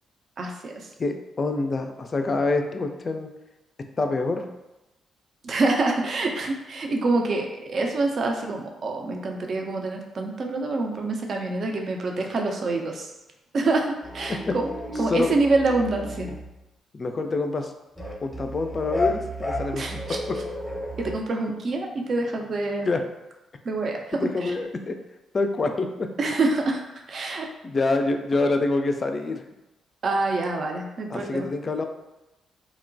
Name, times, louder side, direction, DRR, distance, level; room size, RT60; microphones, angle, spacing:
voice 1, 0.4-0.9 5.4-13.1 13.5-14.7 15.0-16.3 19.7-20.2 21.0-22.9 23.6-24.5 26.2-26.8 27.1-27.5 30.0-31.5, right 3 dB, 55° right, 2 dB, 0.4 m, -26 dB
voice 2, 1.0-3.3 4.0-4.4 14.5-14.6 15.1-15.3 16.9-17.7 18.2-20.0 22.8-23.0 24.2-25.0 25.3-26.1 27.6-29.4 31.1-31.8, left 3 dB, 45° left, 6 dB, 0.3 m, -26 dB
sound 1, 14.0-16.5 18.0-21.2, left 1 dB, 10° left, 0.6 m, -32 dB
2.8 x 2.1 x 2.5 m, 0.98 s
hypercardioid pair, 45°, 0 cm